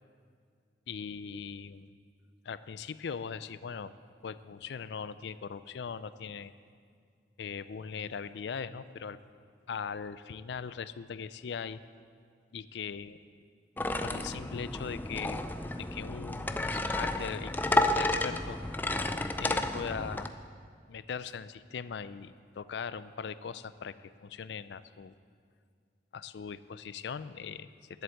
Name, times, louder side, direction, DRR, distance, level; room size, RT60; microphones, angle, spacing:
voice 1, 0.9-1.9 2.4-3.9 4.2-6.5 7.4-9.2 9.7-11.8 12.5-13.2 14.0-15.4 15.8-18.6 19.4-20.3 20.9-24.0 24.2-25.1 26.1-28.0, left 6 dB, 80° left, 15 dB, 0.4 m, -40 dB
sound 1, 13.8-20.3, left 1 dB, 10° left, 0.3 m, -31 dB
11.0 x 7.8 x 7.7 m, 2.1 s
head